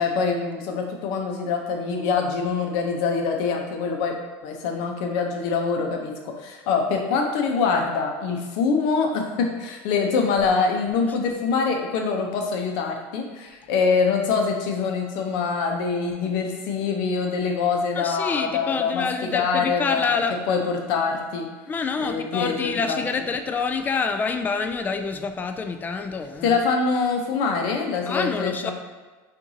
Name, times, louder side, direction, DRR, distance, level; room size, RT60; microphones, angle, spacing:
voice 1, 0.0-4.1 4.4-19.1 19.3-21.5 22.0-23.0 26.4-28.7, left 5 dB, 70° left, 3 dB, 0.7 m, -24 dB
voice 2, 17.9-20.4 21.7-26.6 28.1-28.7, left 5 dB, 20° left, 7 dB, 0.3 m, -27 dB
5.5 x 2.6 x 2.7 m, 1.3 s
supercardioid pair, 120°, 8 cm